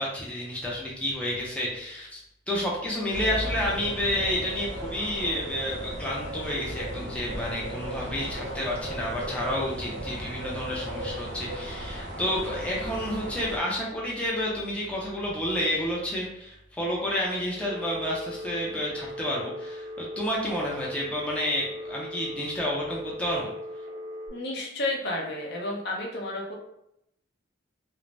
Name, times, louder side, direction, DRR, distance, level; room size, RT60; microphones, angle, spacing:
voice 1, 0.0-2.2 2.5-23.5, left 1 dB, 5° left, -4 dB, 0.4 m, -30 dB
sound 1, 3.1-13.6, right 1 dB, 85° right, 1.0 m, -36 dB
Telephone, 17.5-24.3, left 1 dB, 70° right, 0.6 m, -39 dB
voice 2, 24.3-26.5, left 2 dB, 60° left, -1 dB, 0.6 m, -31 dB
2.5 x 2.0 x 3.1 m, 0.79 s
head